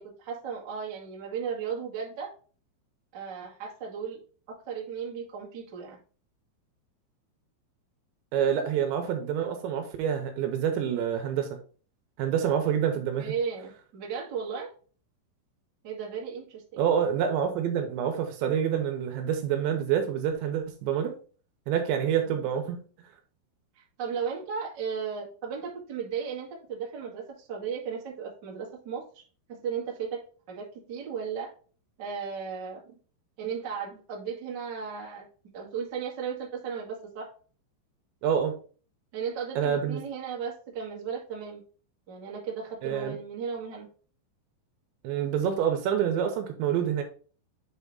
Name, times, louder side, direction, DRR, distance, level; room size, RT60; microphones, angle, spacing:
voice 1, 0.0-2.3 3.1-4.2 4.5-6.0 13.2-14.7 15.8-16.8 22.2-22.5 23.7-29.2 29.5-30.2 30.5-31.5 32.0-32.9 33.4-35.3 35.5-37.3 39.1-41.6 42.1-43.9, right 6 dB, 60° right, -3 dB, 1.1 m, -35 dB
voice 2, 8.3-11.5 12.2-13.3 16.8-21.1 21.7-22.8 38.2-38.5 39.6-40.0 42.8-43.2 45.0-47.0, right 8 dB, 80° right, 5 dB, 3.0 m, -27 dB
8.0 x 3.5 x 3.9 m, 0.39 s
omnidirectional pair, 5.5 m